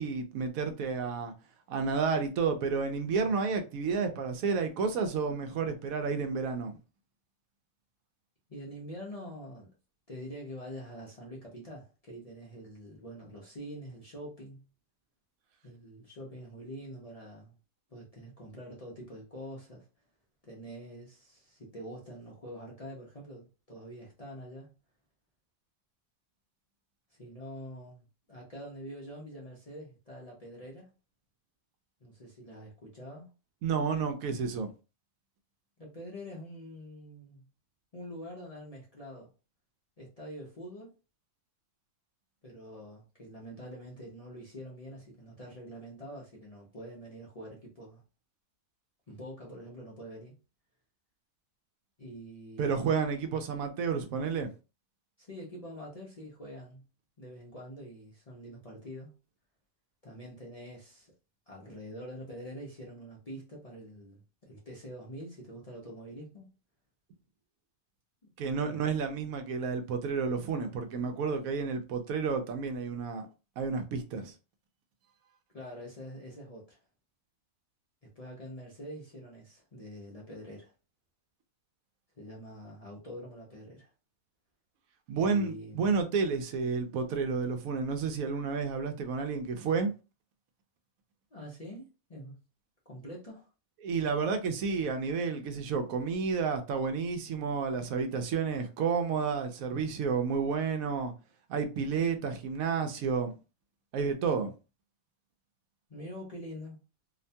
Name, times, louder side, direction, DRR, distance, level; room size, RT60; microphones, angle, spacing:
voice 1, 0.0-1.3 1.7-6.8 33.6-34.7 52.6-54.5 68.4-73.3 73.6-74.3 85.1-89.9 93.8-101.1 101.5-103.3 103.9-104.5, right 5 dB, 85° right, 1.0 m, -31 dB
voice 2, 8.5-9.7 10.1-14.7 15.6-17.6 17.9-19.9 20.4-24.7 27.2-30.9 32.0-33.3 35.8-37.5 37.9-39.3 40.0-40.9 42.4-48.0 49.1-50.3 52.0-52.8 55.2-56.8 57.2-59.1 60.0-61.1 61.5-66.5 68.7-68.8 75.5-76.8 78.0-80.7 82.2-83.9 85.2-85.9 91.3-92.4 92.9-93.5 105.9-106.8, equal, 40° left, 0.5 m, -45 dB
2.8 x 2.2 x 2.6 m
omnidirectional pair, 1.4 m